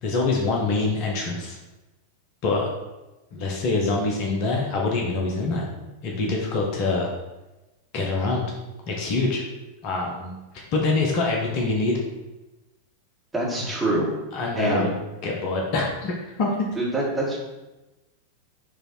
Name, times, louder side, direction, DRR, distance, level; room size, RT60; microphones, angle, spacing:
voice 1, 0.0-1.6 2.4-2.7 3.3-5.7 6.0-7.1 7.9-8.5 8.9-9.4 9.8-10.3 10.7-12.0 14.3-14.9 15.2-16.7, left 3 dB, 45° left, 0 dB, 1.0 m, -25 dB
voice 2, 13.3-14.1 14.6-14.9 16.8-17.4, right 2 dB, 10° right, -5 dB, 2.0 m, -25 dB
6.7 x 3.3 x 4.5 m, 1.1 s
figure-of-eight pair, 90°, 0 cm